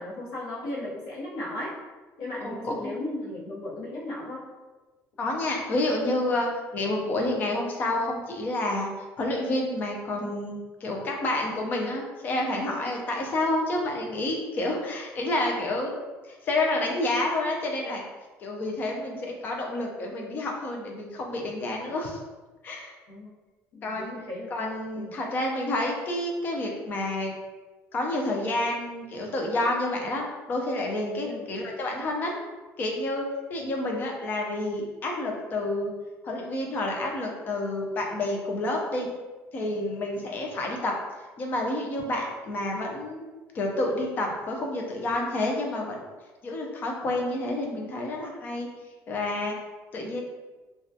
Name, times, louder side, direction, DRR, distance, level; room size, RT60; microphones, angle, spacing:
voice 1, 0.0-1.7 2.2-4.5 23.1-23.3 23.7-24.5 24.9-25.1 31.2-31.4, left 1 dB, 80° left, -5 dB, 0.8 m, -36 dB
voice 2, 2.4-3.0 5.2-8.9 9.2-16.0 16.3-18.0 18.4-22.2 22.6-22.9 23.8-24.1 24.5-27.3 27.9-32.3 32.8-35.9 36.2-39.1 39.5-40.9 41.4-43.2 43.5-46.0 46.4-48.7 49.1-49.5 49.9-50.2, left 1 dB, 30° left, 1 dB, 0.4 m, -29 dB
2.2 x 2.1 x 2.6 m, 1.2 s
cardioid pair, 170°, 6 cm